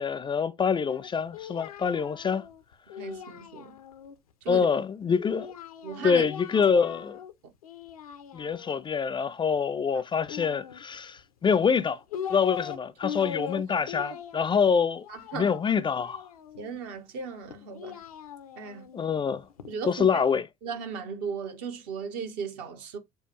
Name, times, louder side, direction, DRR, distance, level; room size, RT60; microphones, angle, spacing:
voice 1, 0.0-2.5 4.5-5.5 6.0-7.2 8.3-12.0 12.3-15.1 15.3-16.2 18.9-19.4 19.9-20.4, left 6 dB, 25° left, 0.5 m, -25 dB
Singing, 0.9-4.1 5.3-7.3 7.6-8.8 10.2-11.2 11.8-12.8 13.0-16.7 17.5-19.7, left 8 dB, 85° left, 0.6 m, -41 dB
voice 2, 3.0-3.8 4.4-4.7 5.8-6.2 15.1-15.5 16.6-18.0 18.6-18.9 19.7-20.2 20.6-23.0, right 6 dB, 65° right, 1.2 m, -36 dB
6.8 x 2.3 x 3.0 m
hypercardioid pair, 60°, 18 cm